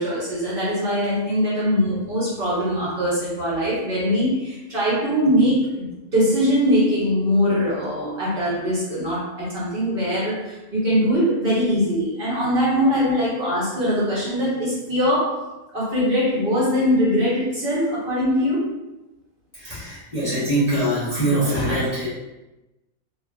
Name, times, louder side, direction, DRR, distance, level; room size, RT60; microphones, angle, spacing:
voice 1, 0.0-18.7, equal, 45° right, -9 dB, 0.9 m, -22 dB
voice 2, 19.5-22.1, right 1 dB, 40° left, -11 dB, 0.6 m, -23 dB
2.5 x 2.4 x 2.3 m, 1.0 s
omnidirectional pair, 1.5 m